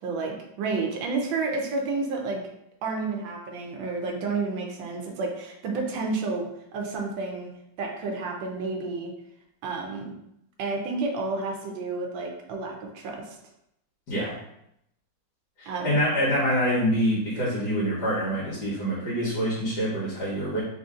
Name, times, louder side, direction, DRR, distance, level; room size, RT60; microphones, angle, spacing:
voice 1, 0.0-2.4 2.8-7.5 7.8-9.1 9.6-10.1 10.6-13.4 15.7-16.0, right 3 dB, 80° right, 1 dB, 1.5 m, -30 dB
voice 2, 15.6-20.6, equal, 60° left, -7 dB, 1.9 m, -26 dB
4.1 x 2.7 x 3.6 m, 0.78 s
omnidirectional pair, 2.0 m